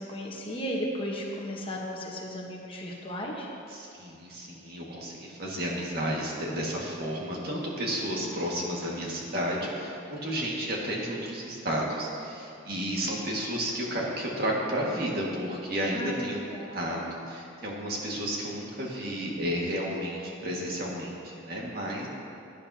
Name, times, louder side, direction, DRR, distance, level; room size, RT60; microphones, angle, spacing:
voice 1, 0.0-3.5 15.9-16.8, equal, 25° left, -2 dB, 1.2 m, -35 dB
voice 2, 3.7-22.1, equal, 50° right, -3 dB, 1.9 m, -32 dB
17.5 x 10.5 x 2.8 m, 2.6 s
head